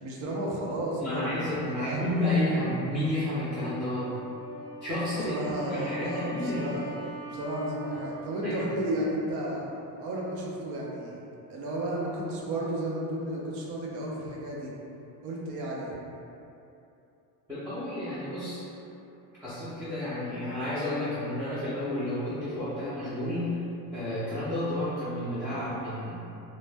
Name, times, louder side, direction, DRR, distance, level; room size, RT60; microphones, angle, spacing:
voice 1, 0.0-2.0 5.2-7.0 7.3-9.6 10.0-11.2 11.5-14.7 15.2-16.0, right 1 dB, 70° right, -4 dB, 0.6 m, -33 dB
voice 2, 1.0-4.1 4.8-5.4 5.7-6.7 8.4-8.7 17.5-18.7 19.4-23.5 23.9-26.1, left 1 dB, 10° right, -15 dB, 0.4 m, -31 dB
Wind instrument woodwind instrument, 4.0-9.4, equal, 70° left, 0.5 m, -42 dB
2.1 x 2.0 x 3.3 m, 2.8 s
cardioid pair, 145°, 41 cm